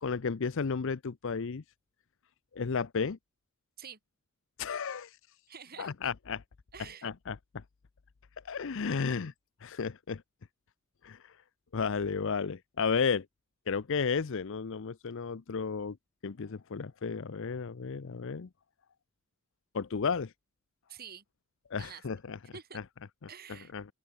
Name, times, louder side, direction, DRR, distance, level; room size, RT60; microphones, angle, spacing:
voice 1, 0.0-1.6 2.5-3.2 4.6-5.1 5.8-6.4 7.0-7.4 8.4-9.3 9.6-10.2 11.0-11.2 11.7-13.2 13.7-16.0 16.2-18.5 19.7-20.3 21.7-22.4 23.7-23.8, left 5 dB, 60° left, 0.6 m, -33 dB
voice 2, 5.5-6.1 6.7-7.1 20.9-21.2 21.8-22.0 22.5-22.8 23.3-23.7, right 7 dB, 45° right, 2.9 m, -47 dB
open air
head